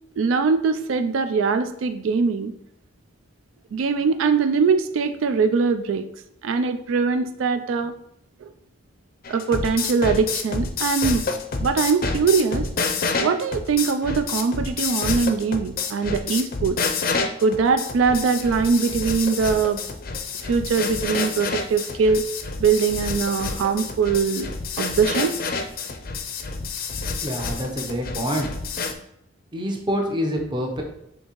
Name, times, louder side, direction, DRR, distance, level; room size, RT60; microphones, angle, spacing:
voice 1, 0.2-2.5 3.7-6.1 6.4-7.9 8.4-8.5 9.3-11.2 11.6-12.7 13.2-16.8 17.4-19.8 20.4-22.2 22.6-24.5 24.8-25.3, right 5 dB, 85° right, 8 dB, 0.3 m, -22 dB
sound 1, 9.2-28.9, left 4 dB, 50° left, 0.5 m, -28 dB
voice 2, 27.2-28.5 29.5-30.8, equal, 25° right, 1 dB, 0.7 m, -26 dB
6.4 x 2.7 x 3.0 m, 0.78 s
head